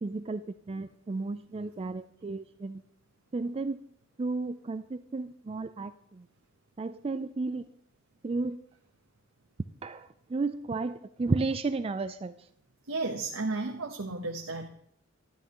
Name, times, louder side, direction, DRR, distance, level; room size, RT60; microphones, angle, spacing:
voice 1, 0.0-2.8 3.3-3.8 4.2-6.3 6.8-7.7 8.2-8.6 9.8-12.3, right 3 dB, 30° right, 11 dB, 0.3 m, -33 dB
voice 2, 12.9-14.7, right 3 dB, 80° right, 3 dB, 0.9 m, -33 dB
12.5 x 11.0 x 3.0 m, 0.69 s
head